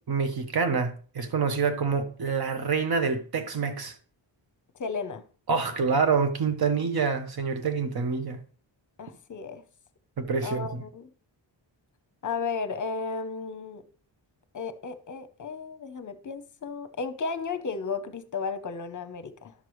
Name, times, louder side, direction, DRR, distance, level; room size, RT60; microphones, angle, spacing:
voice 1, 0.1-3.9 5.5-8.4 10.2-10.6, right 5 dB, 50° right, 1.0 m, -26 dB
voice 2, 4.8-5.2 9.0-9.6 10.4-11.1 12.2-13.8 14.5-19.5, left 4 dB, 40° left, 0.8 m, -34 dB
11.5 x 6.7 x 3.1 m
wide cardioid pair, 175°, 46 cm